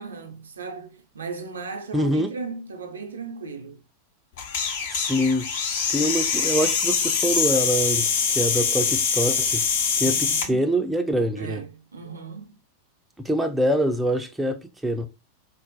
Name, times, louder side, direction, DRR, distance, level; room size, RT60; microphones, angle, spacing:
voice 1, 0.0-3.8 10.0-10.6 11.4-12.5, right 4 dB, 70° right, 0.5 m, -37 dB
voice 2, 1.9-2.3 4.9-5.5 5.9-9.6 10.0-11.6 13.2-15.1, equal, 5° right, 0.4 m, -24 dB
sound 1, 4.4-10.5, left 6 dB, 55° left, 0.5 m, -24 dB
3.8 x 2.1 x 2.6 m
figure-of-eight pair, 90°, 0 cm